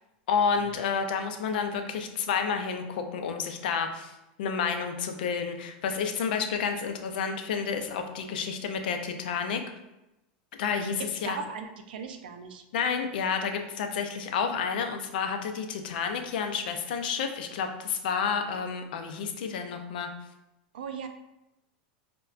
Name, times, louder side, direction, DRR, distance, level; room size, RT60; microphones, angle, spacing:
voice 1, 0.3-4.1 4.4-9.6 10.6-11.4 12.7-20.1, left 6 dB, 80° left, 6 dB, 0.5 m, -30 dB
voice 2, 11.0-12.6 20.7-21.1, right 6 dB, 90° right, 7 dB, 0.4 m, -38 dB
4.2 x 2.2 x 2.4 m, 0.93 s
supercardioid pair, 130°, 5 cm